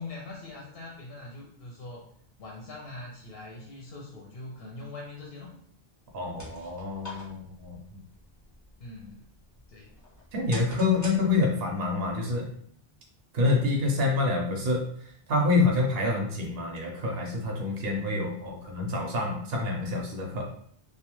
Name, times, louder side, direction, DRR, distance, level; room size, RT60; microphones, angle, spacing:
voice 1, 0.0-2.0 2.4-5.5 8.8-9.3 9.7-9.9, left 2 dB, 70° left, -2 dB, 0.8 m, -42 dB
sound 1, 6.0-11.8, left 1 dB, 20° left, 0.7 m, -47 dB
voice 2, 6.1-7.8 10.3-12.5 13.3-14.8 15.3-20.5, left 3 dB, 70° right, 1 dB, 0.8 m, -27 dB
2.3 x 2.2 x 2.9 m, 0.62 s
omnidirectional pair, 1.1 m